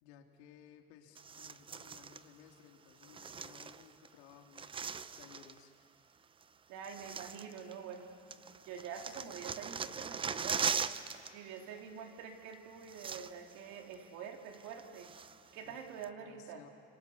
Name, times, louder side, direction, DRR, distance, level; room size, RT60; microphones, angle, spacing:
voice 1, 0.0-6.0 9.1-9.4 15.6-15.7 16.2-16.7, left 9 dB, 85° left, 3 dB, 2.7 m, -59 dB
sound 1, 1.2-2.2 3.0-4.1 4.3-5.6 6.4-6.5 6.8-8.0 8.3-11.3 11.6-11.8 12.5-12.6 12.8-13.6 13.9-14.0 14.5-15.5 16.0-16.1, right 6 dB, 15° right, 0.5 m, -40 dB
voice 2, 6.7-8.1 8.6-10.9 11.3-15.1 15.5-16.6, right 7 dB, 65° right, 3 dB, 3.4 m, -46 dB
29.5 x 26.5 x 7.0 m, 2.5 s
supercardioid pair, 125°, 31 cm